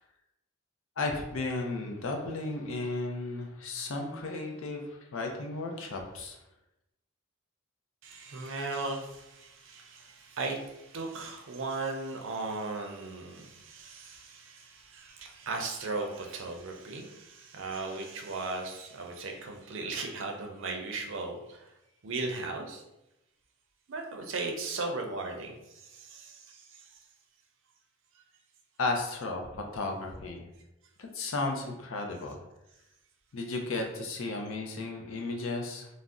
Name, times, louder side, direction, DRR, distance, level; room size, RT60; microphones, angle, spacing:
voice 1, 1.0-6.4 28.8-30.5 31.0-32.4 33.3-35.9, left 2 dB, 70° left, 2 dB, 0.5 m, -34 dB
voice 2, 8.0-21.7 22.0-22.8 23.9-27.0 28.1-28.2, right 3 dB, 65° right, 3 dB, 0.5 m, -37 dB
2.5 x 2.0 x 3.5 m, 0.91 s
head